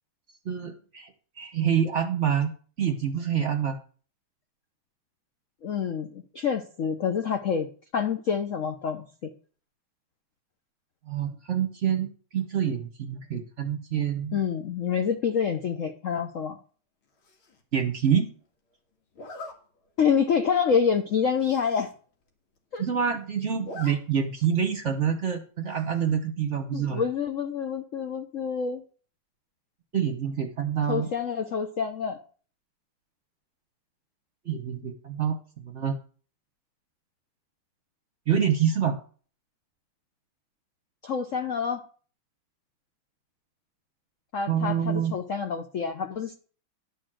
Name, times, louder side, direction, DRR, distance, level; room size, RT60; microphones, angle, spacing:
voice 1, 0.4-1.1 1.4-2.5 2.8-3.8 11.1-14.4 17.7-18.4 22.8-27.0 29.9-31.1 34.4-36.0 38.3-39.0 44.5-45.2, right 8 dB, 45° right, 6 dB, 1.1 m, -27 dB
voice 2, 5.6-7.7 7.9-9.3 14.3-16.6 20.0-21.9 22.7-22.8 26.7-28.8 30.9-32.2 41.0-41.8 44.3-46.3, left 6 dB, 65° left, 6 dB, 0.8 m, -27 dB
Zipper (clothing), 17.2-17.6 19.1-19.5 20.1-20.3 20.6-20.7 20.9-21.0 21.3-21.9 22.3-22.4 22.6-23.1 23.4-23.9 24.3-24.4 25.7-26.1, left 2 dB, 80° left, 2.6 m, -43 dB
11.5 x 4.4 x 7.5 m, 0.41 s
omnidirectional pair, 2.3 m